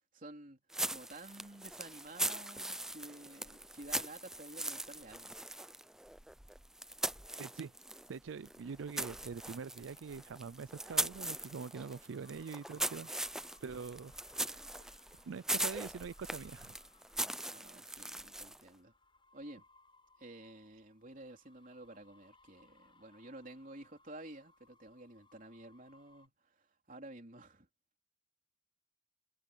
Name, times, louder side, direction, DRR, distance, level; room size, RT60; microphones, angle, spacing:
voice 1, 0.1-5.3 17.5-18.9 19.3-19.6 20.2-27.7, right 1 dB, 40° right, 3.8 m, -52 dB
sound 1, 0.7-8.1 8.4-18.7, right 1 dB, 5° right, 0.4 m, -40 dB
voice 2, 7.4-7.7 8.1-13.1 13.6-14.9 15.2-16.8, right 5 dB, 75° right, 0.4 m, -44 dB
sound 2, 9.9-26.3, left 3 dB, 25° left, 7.1 m, -67 dB
head